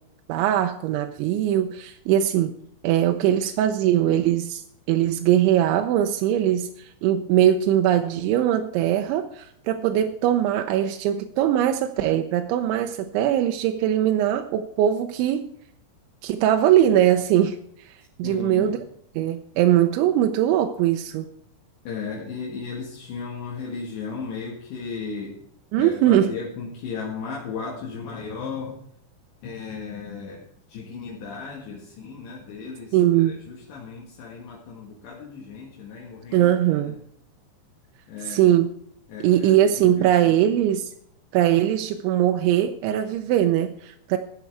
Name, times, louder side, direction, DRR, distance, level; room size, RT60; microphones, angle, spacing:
voice 1, 0.3-2.5 2.8-15.5 16.2-18.8 19.2-21.3 25.7-26.3 32.9-33.4 36.3-36.9 38.3-38.7 39.2-40.9 41.3-44.2, right 11 dB, 85° right, 5 dB, 3.0 m, -21 dB
voice 2, 18.2-18.8 21.9-25.4 25.8-28.8 29.4-33.0 33.3-36.5 36.9-37.0 38.1-38.5 39.1-40.3, left 5 dB, 70° left, -3 dB, 3.8 m, -35 dB
13.5 x 8.1 x 4.6 m, 0.70 s
omnidirectional pair, 5.5 m